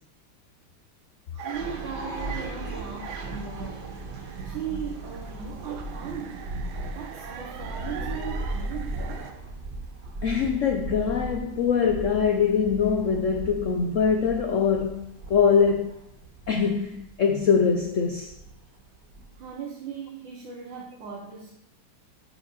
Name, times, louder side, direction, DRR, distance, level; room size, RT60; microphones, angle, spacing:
voice 1, 1.3-3.9 4.4-6.6 6.9-9.3 19.4-21.6, right 7 dB, 70° right, 1.8 m, -38 dB
sound 1, 1.4-9.3, right 7 dB, 90° right, 1.7 m, -43 dB
sound 2, 1.5-19.5, right 2 dB, 55° right, 2.3 m, -37 dB
voice 2, 10.2-15.9 16.5-18.3, left 6 dB, 65° left, 0.7 m, -23 dB
7.2 x 6.4 x 6.3 m
omnidirectional pair, 2.2 m